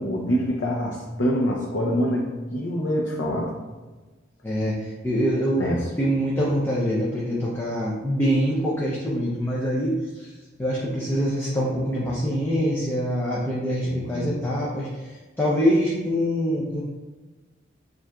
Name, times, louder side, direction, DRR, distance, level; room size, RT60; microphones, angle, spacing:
voice 1, 0.0-3.5 5.1-5.2 5.6-5.9 13.8-14.4, equal, 70° left, -3 dB, 0.6 m, -25 dB
voice 2, 4.4-5.7 6.0-10.3 10.6-16.8, equal, 10° left, -6 dB, 0.5 m, -24 dB
7.2 x 2.5 x 2.3 m, 1.3 s
head